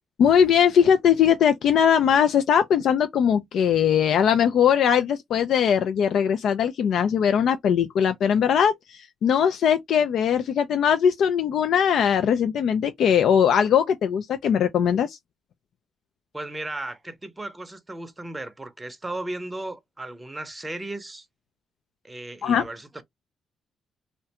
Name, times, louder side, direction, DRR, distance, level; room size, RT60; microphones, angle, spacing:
voice 1, 0.2-15.2 22.4-22.6, left 8 dB, 70° left, 0.3 m, -20 dB
voice 2, 16.3-21.3 22.0-23.0, right 2 dB, 15° right, 0.6 m, -35 dB
2.4 x 2.2 x 2.8 m
cardioid pair, 90°, 0 cm